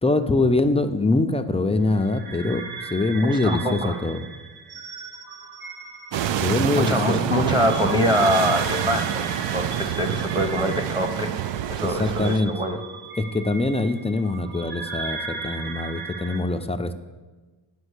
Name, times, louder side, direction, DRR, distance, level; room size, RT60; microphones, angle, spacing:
voice 1, 0.0-2.6 2.9-4.2 6.4-7.2 11.8-12.5 13.2-16.9, left 2 dB, 15° left, 7 dB, 0.3 m, -23 dB
sound 1, 1.9-16.4, right 4 dB, 60° right, 1.5 m, -37 dB
voice 2, 3.2-4.0 6.8-11.3 11.7-12.8, equal, 10° right, 2 dB, 0.8 m, -24 dB
sound 2, 6.1-12.4, right 10 dB, 80° right, 0.5 m, -27 dB
10.0 x 5.1 x 8.1 m, 1.3 s
wide cardioid pair, 150°, 43 cm